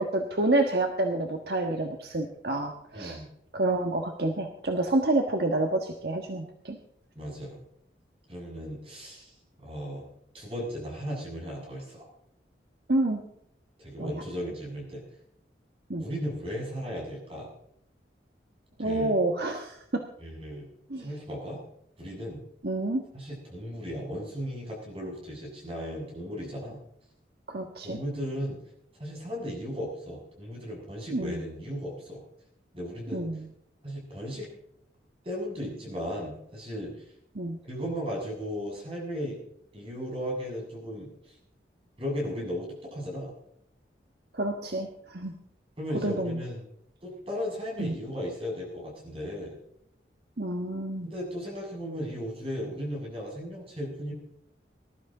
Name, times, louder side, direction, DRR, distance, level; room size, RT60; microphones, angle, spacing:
voice 1, 0.0-3.2 3.5-6.8 12.9-13.2 14.0-14.2 15.9-16.1 18.8-20.0 20.9-21.1 22.6-23.0 27.5-28.0 31.1-31.4 33.1-33.5 37.3-37.6 44.3-45.3 46.0-46.4 47.8-48.0 50.4-51.1, right 2 dB, 60° right, 3 dB, 1.4 m, -28 dB
voice 2, 2.9-3.3 7.2-7.6 8.3-9.3 9.6-10.1 10.3-12.1 13.8-15.0 16.0-17.5 18.8-19.1 20.2-20.7 21.0-21.6 22.0-22.4 23.1-26.8 27.8-28.6 28.9-32.2 32.7-33.3 33.8-34.5 35.2-37.1 37.7-39.4 39.7-41.3 42.0-43.3 45.8-46.6 47.0-49.6 51.0-54.1, equal, 30° right, -2 dB, 7.2 m, -36 dB
20.5 x 12.5 x 3.9 m, 0.73 s
head